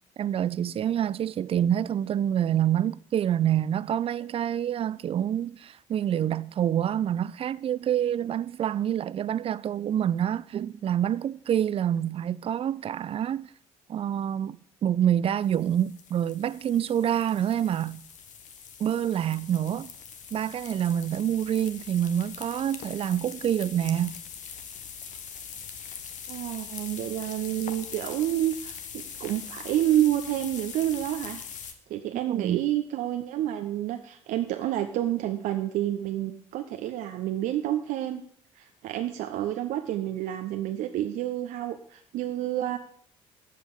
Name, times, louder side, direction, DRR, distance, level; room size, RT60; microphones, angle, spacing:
voice 1, 0.2-13.5 13.9-18.0 18.8-19.9 20.3-24.1 32.1-32.6, right 10 dB, 35° right, 0.5 m, -27 dB
sound 1, 15.4-31.7, left 7 dB, 50° left, 1.3 m, -42 dB
voice 2, 26.3-31.4 31.9-38.2 38.6-42.8, right 12 dB, 55° right, 0.8 m, -29 dB
14.0 x 5.6 x 8.2 m
figure-of-eight pair, 45°, 16 cm